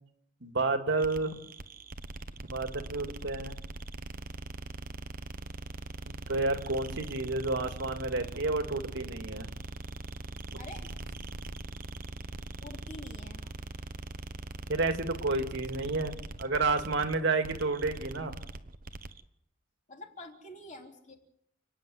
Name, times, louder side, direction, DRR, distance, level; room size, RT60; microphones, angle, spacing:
voice 1, 0.4-1.4 2.5-3.5 6.0-9.5 10.5-10.6 14.7-18.3, right 3 dB, 65° right, 6 dB, 2.3 m, -30 dB
sound 1, 1.0-19.2, right 2 dB, 45° right, 1.1 m, -42 dB
voice 2, 10.6-10.9 12.6-13.5 19.9-21.1, left 1 dB, 40° left, 2 dB, 3.6 m, -47 dB
29.5 x 9.9 x 9.5 m, 0.76 s
head